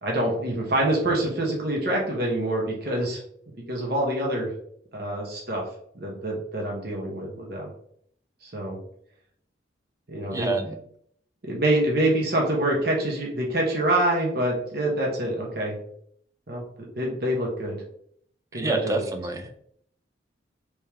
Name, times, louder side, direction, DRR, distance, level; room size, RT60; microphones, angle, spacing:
voice 1, 0.0-3.2 3.7-4.5 4.9-5.6 6.0-7.7 8.4-8.8 10.1-10.5 11.4-15.8 16.5-16.6 17.0-17.8 18.5-19.0, right 1 dB, 55° right, -1 dB, 0.9 m, -26 dB
voice 2, 10.3-10.8 18.5-19.6, right 3 dB, 15° right, 5 dB, 0.3 m, -28 dB
3.5 x 3.1 x 2.9 m, 0.66 s
head